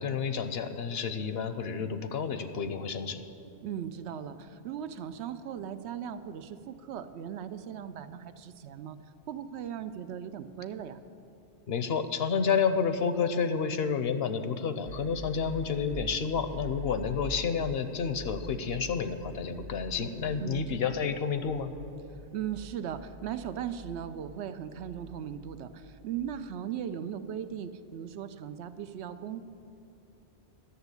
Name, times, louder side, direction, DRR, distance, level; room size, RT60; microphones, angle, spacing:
voice 1, 0.0-3.2 11.7-21.7, left 6 dB, 65° left, 10 dB, 0.9 m, -30 dB
voice 2, 3.6-9.0 9.3-11.0 20.4-21.1 22.3-29.4, right 9 dB, 80° right, 11 dB, 0.9 m, -38 dB
sound 1, 14.9-26.4, right 2 dB, 55° right, 0.5 m, -45 dB
11.0 x 6.9 x 8.1 m, 2.9 s
omnidirectional pair, 1.1 m